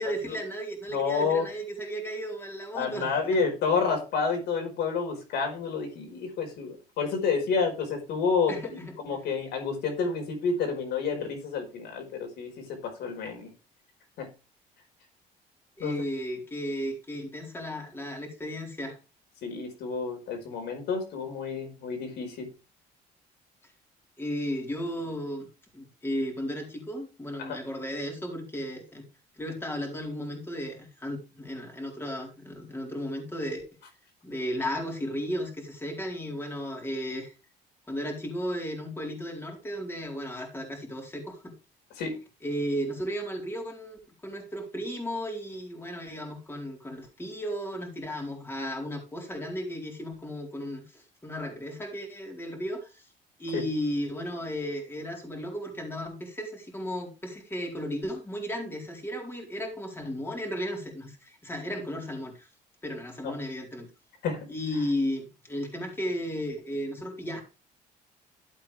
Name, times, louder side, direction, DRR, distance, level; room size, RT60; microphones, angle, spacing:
voice 1, 0.0-3.4 8.5-8.9 15.8-19.0 24.2-25.5 25.7-29.1 29.4-33.6 34.2-37.3 37.9-41.5 42.4-53.0 53.4-62.5 62.8-63.9 64.5-67.4, equal, 15° left, 0 dB, 4.4 m, -34 dB
voice 2, 0.9-1.4 2.7-13.5 14.2-14.3 15.8-15.9 19.4-22.5 27.4-27.6 42.0-42.2 53.5-53.6 63.2-63.3 64.2-64.4, left 5 dB, 75° left, 3 dB, 5.0 m, -29 dB
12.5 x 8.4 x 3.5 m, 0.30 s
cardioid pair, 110°, 17 cm